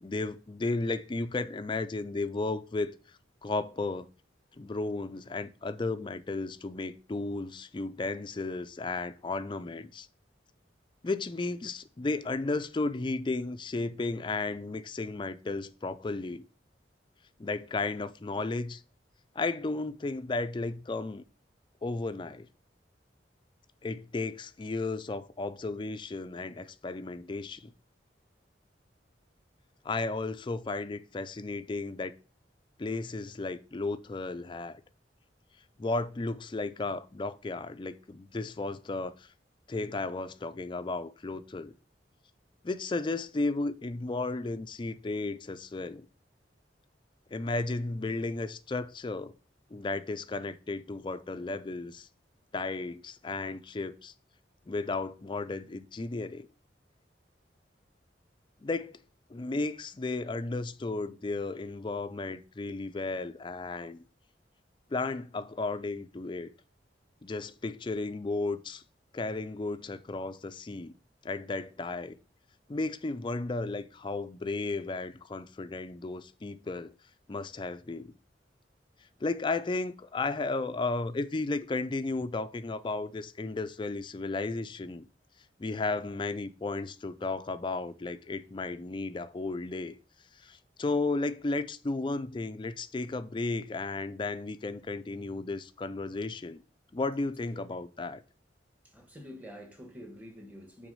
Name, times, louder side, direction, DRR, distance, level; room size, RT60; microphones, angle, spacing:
voice 1, 0.0-2.9 3.4-4.1 4.6-10.1 11.0-16.5 17.4-18.8 19.3-21.2 21.8-22.5 23.8-27.7 29.8-32.1 32.8-34.8 35.8-39.3 39.7-41.7 42.6-46.1 47.3-49.3 49.7-52.1 52.5-54.1 54.7-56.5 58.6-58.9 59.3-64.0 64.9-66.5 67.2-68.8 69.1-70.9 71.2-72.2 72.7-76.9 77.3-78.1 79.2-85.1 85.6-90.0 90.4-96.6 96.9-98.2, left 3 dB, 25° left, 0.4 m, -34 dB
voice 2, 98.8-100.9, equal, 10° right, 1.3 m, -47 dB
5.9 x 3.9 x 5.5 m
head